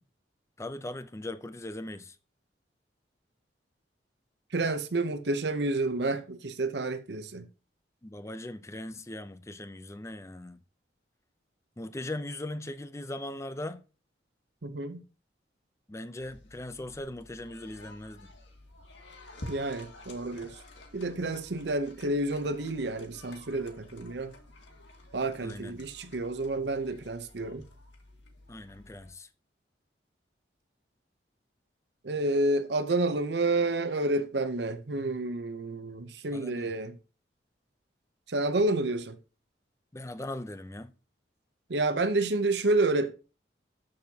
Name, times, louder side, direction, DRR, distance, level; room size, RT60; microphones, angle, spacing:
voice 1, 0.6-2.2 8.0-10.6 11.8-13.8 15.9-18.3 25.4-25.8 28.5-29.3 36.3-36.7 39.9-40.9, left 1 dB, 15° left, 0.5 m, -39 dB
voice 2, 4.5-7.5 14.6-15.0 19.5-20.6 20.9-24.3 25.1-27.6 32.0-37.0 38.3-39.2 41.7-43.1, right 2 dB, 65° right, 0.7 m, -29 dB
sound 1, 16.2-29.1, left 1 dB, 85° left, 2.0 m, -50 dB
13.0 x 6.4 x 2.8 m
head